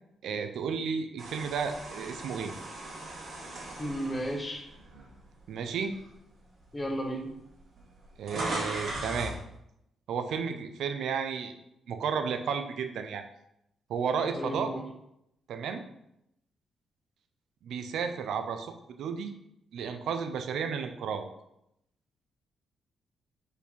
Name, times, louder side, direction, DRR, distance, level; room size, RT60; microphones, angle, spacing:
voice 1, 0.2-2.5 5.5-6.0 8.2-9.3 10.1-11.5 11.9-13.3 13.9-14.7 15.5-15.8 17.6-19.3 19.7-21.3, right 6 dB, 80° right, 7 dB, 0.6 m, -32 dB
sound 1, 1.2-5.4 5.9-6.1 7.0-7.1 7.3-9.4, right 1 dB, 55° right, 2.5 m, -38 dB
voice 2, 3.8-4.7 6.7-7.3 14.3-14.8, equal, 15° left, 2 dB, 1.0 m, -33 dB
4.9 x 4.6 x 5.2 m, 0.80 s
cardioid pair, 135°, 0 cm